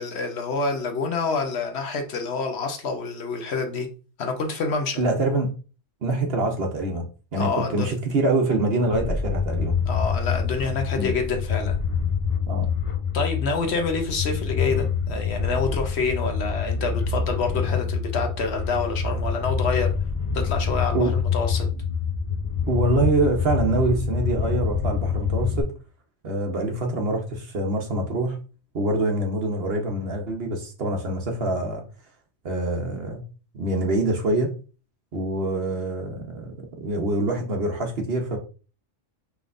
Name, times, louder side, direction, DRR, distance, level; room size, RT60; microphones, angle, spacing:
voice 1, 0.0-3.9 4.2-5.0 7.4-7.9 9.8-11.8 13.1-19.9 20.3-21.7, left 4 dB, 60° left, 5 dB, 1.0 m, -27 dB
voice 2, 5.0-5.6 6.0-7.0 7.3-9.7 11.0-11.2 12.5-12.7 20.9-21.1 22.7-25.7 26.2-28.4 28.7-31.8 32.4-33.2 33.5-34.5 35.1-38.4, right 2 dB, 55° right, 3 dB, 1.1 m, -25 dB
sound 1, 8.9-25.6, left 6 dB, 35° left, 0.5 m, -26 dB
5.5 x 3.4 x 2.5 m, 0.36 s
omnidirectional pair, 1.3 m